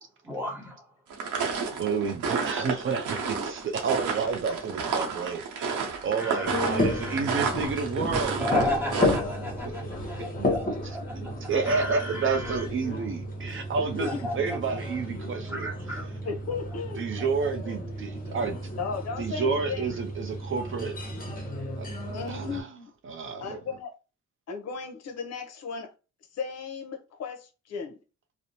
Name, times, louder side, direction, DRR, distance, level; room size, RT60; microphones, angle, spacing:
voice 1, 0.3-0.9 6.2-7.2 8.4-11.0 11.6-12.7 14.0-14.3 15.5-16.1, left 1 dB, 5° right, 1.0 m, -34 dB
sound 1, 1.1-9.2, right 5 dB, 80° right, 0.8 m, -31 dB
voice 2, 1.8-8.4 9.6-9.7 10.4-10.5 11.1-14.1 14.3-15.7 17.0-18.6 19.2-21.0 21.8-21.9 22.2-22.6 23.1-23.4, right 5 dB, 45° right, 0.5 m, -30 dB
voice 3, 4.2-4.6 5.0-5.3 11.0-11.1 13.8-14.4 16.2-17.1 18.8-20.0 22.1-22.9 23.4-23.9 24.5-25.9 26.3-28.0, left 5 dB, 60° left, 0.6 m, -36 dB
sound 2, 6.4-22.6, left 1 dB, 30° left, 0.9 m, -32 dB
2.6 x 2.0 x 2.8 m
cardioid pair, 90°, 30 cm